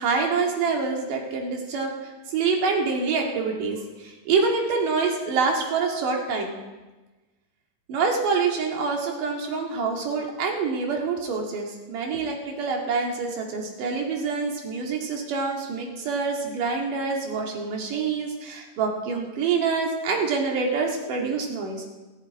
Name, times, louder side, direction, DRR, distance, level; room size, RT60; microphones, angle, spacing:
voice 1, 0.0-6.6 7.9-21.9, right 4 dB, 70° right, 1 dB, 3.6 m, -26 dB
27.5 x 11.0 x 4.7 m, 1.2 s
omnidirectional pair, 4.0 m